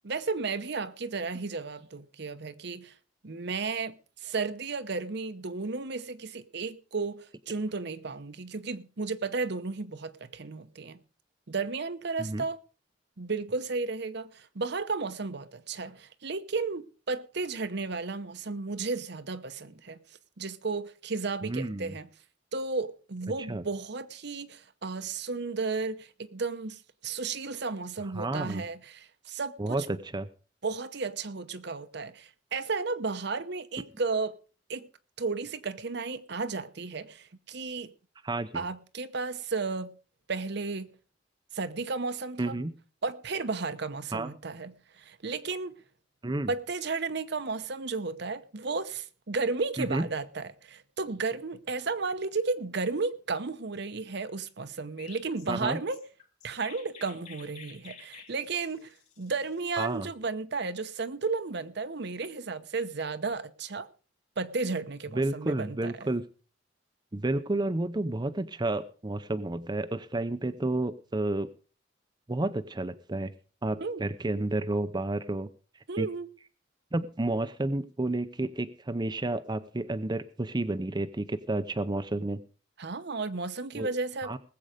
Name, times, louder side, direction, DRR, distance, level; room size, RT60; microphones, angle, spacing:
voice 1, 0.0-2.9 3.2-3.9 4.2-11.0 11.5-12.6 13.2-20.0 20.4-22.1 22.5-29.9 30.6-34.3 34.7-34.9 35.2-37.9 38.5-39.9 40.3-40.9 41.5-42.5 43.0-45.7 46.5-56.0 56.4-63.9 64.4-66.1 73.8-74.1 75.9-76.3 82.8-84.4, right 4 dB, 60° right, 0.9 m, -33 dB
voice 2, 21.4-22.0 23.5-23.6 28.1-28.6 29.6-30.3 38.2-38.6 42.4-42.7 44.1-44.3 46.2-46.5 49.8-50.1 55.5-55.8 59.8-60.1 65.1-66.2 67.1-71.5 72.3-73.3 73.6-75.5 76.0-76.1 76.9-82.4 83.7-83.9 84.2-84.4, right 2 dB, 25° right, 0.7 m, -31 dB
Chirp tweet, 55.0-60.1, left 6 dB, 40° left, 2.9 m, -51 dB
19.5 x 7.8 x 5.1 m
head